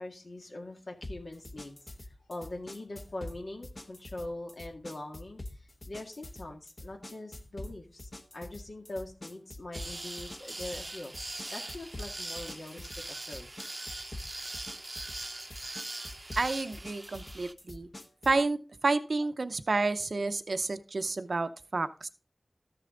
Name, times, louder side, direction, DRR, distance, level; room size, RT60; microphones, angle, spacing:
voice 1, 0.0-13.6, left 2 dB, 85° left, 2 dB, 2.0 m, -43 dB
sound 1, 1.0-18.5, left 1 dB, 50° left, 1.0 m, -46 dB
sound 2, 9.7-17.5, right 2 dB, 40° right, 0.6 m, -41 dB
voice 2, 16.4-17.9 18.3-22.1, right 3 dB, 85° right, 10 dB, 0.6 m, -30 dB
13.5 x 6.8 x 3.8 m, 0.36 s
wide cardioid pair, 70°, 0 cm